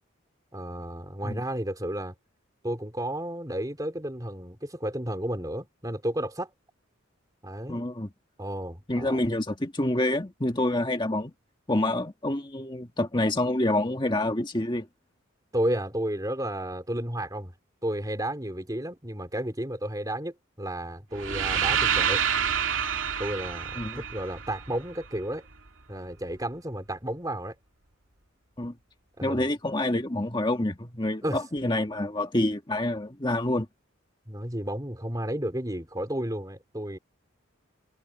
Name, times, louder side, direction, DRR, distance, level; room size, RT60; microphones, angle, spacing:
voice 1, 0.5-2.1 2.6-6.5 7.4-7.8 8.4-9.2 15.5-17.5 17.8-22.2 23.2-25.5 25.9-27.6 29.2-29.5 31.2-31.4 34.3-37.0, right 1 dB, 20° right, 3.7 m, -32 dB
voice 2, 7.7-8.1 8.9-11.3 11.7-14.9 23.8-24.0 28.6-28.7 29.2-33.7, left 1 dB, 25° left, 1.8 m, -27 dB
sound 1, 21.1-25.2, right 8 dB, 75° right, 2.4 m, -28 dB
head